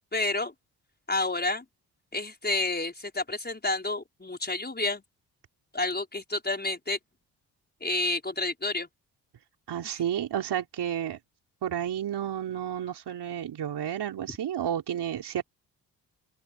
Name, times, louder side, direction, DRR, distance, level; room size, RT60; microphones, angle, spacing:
voice 1, 0.1-0.5 1.1-1.7 2.1-5.0 5.7-7.0 7.8-8.9 9.8-10.0, left 2 dB, 20° left, 5.4 m, -30 dB
voice 2, 9.7-11.2 11.6-15.4, right 10 dB, 65° right, 5.0 m, -31 dB
hypercardioid pair, 45°, 43 cm